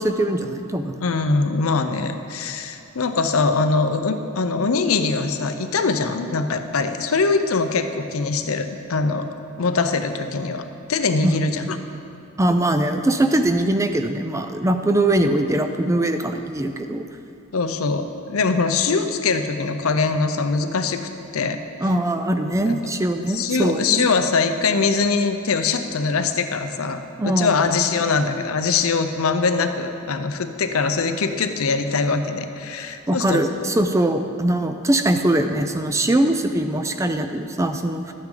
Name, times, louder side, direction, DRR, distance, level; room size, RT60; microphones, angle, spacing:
voice 1, 0.0-0.9 11.2-11.4 12.4-17.0 21.8-24.0 27.2-27.6 33.1-38.1, right 1 dB, 15° right, 7 dB, 0.4 m, -21 dB
voice 2, 1.0-9.3 9.6-11.8 17.5-21.0 21.3-21.6 22.6-22.8 23.3-33.4, left 4 dB, 75° left, 8 dB, 0.6 m, -22 dB
12.5 x 8.9 x 3.9 m, 2.7 s
head